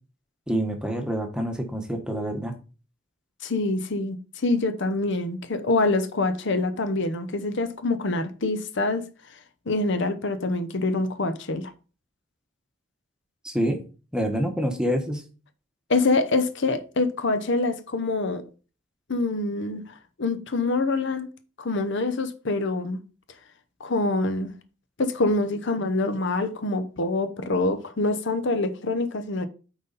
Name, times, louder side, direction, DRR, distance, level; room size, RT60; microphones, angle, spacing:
voice 1, 0.5-2.5 13.4-13.8 14.1-15.2, equal, 5° right, 1.1 m, -26 dB
voice 2, 3.4-9.1 9.7-11.7 15.9-18.4 19.1-21.3 21.6-23.0 23.8-24.5 25.0-29.5, left 2 dB, 60° left, 0.8 m, -25 dB
9.2 x 4.0 x 4.1 m
head